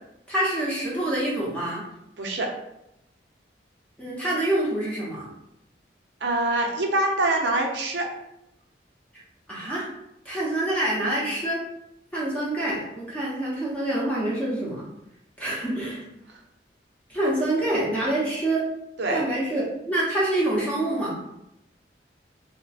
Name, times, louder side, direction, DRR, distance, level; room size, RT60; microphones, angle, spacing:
voice 1, 0.3-1.9 4.0-5.3 9.1-9.2 9.5-9.9 10.2-11.6 12.1-14.9 15.4-16.0 17.1-18.6 19.1-21.2, right 1 dB, 10° left, -7 dB, 0.8 m, -26 dB
voice 2, 2.2-2.5 6.2-8.1 19.0-19.2, right 2 dB, 75° right, 0 dB, 0.7 m, -24 dB
3.2 x 2.2 x 4.0 m, 0.84 s
head